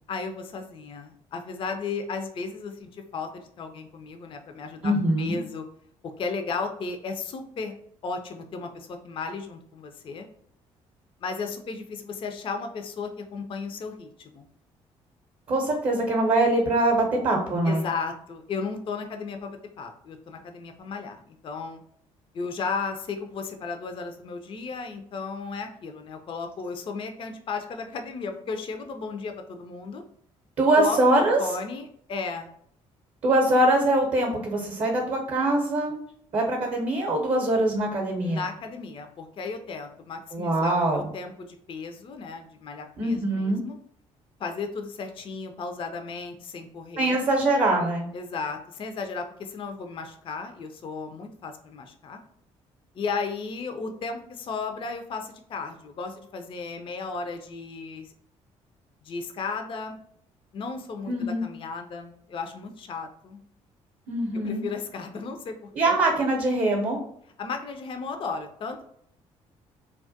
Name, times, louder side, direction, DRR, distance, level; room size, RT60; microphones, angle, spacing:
voice 1, 0.1-4.9 5.2-5.6 6.0-7.7 8.0-10.3 11.2-14.5 17.7-21.8 22.3-30.0 30.8-32.5 38.2-43.8 44.4-47.2 48.1-52.2 52.9-58.1 59.0-60.0 60.5-63.4 64.4-65.9 67.4-68.8, left 4 dB, 35° left, 5 dB, 0.4 m, -35 dB
voice 2, 4.8-5.4 15.5-17.8 30.6-31.4 33.2-36.0 36.3-38.4 40.3-41.0 43.0-43.6 47.0-48.1 61.0-61.4 64.1-64.6 65.7-67.0, right 1 dB, 45° right, 1 dB, 0.6 m, -23 dB
2.2 x 2.1 x 2.6 m, 0.67 s
hypercardioid pair, 50°, 16 cm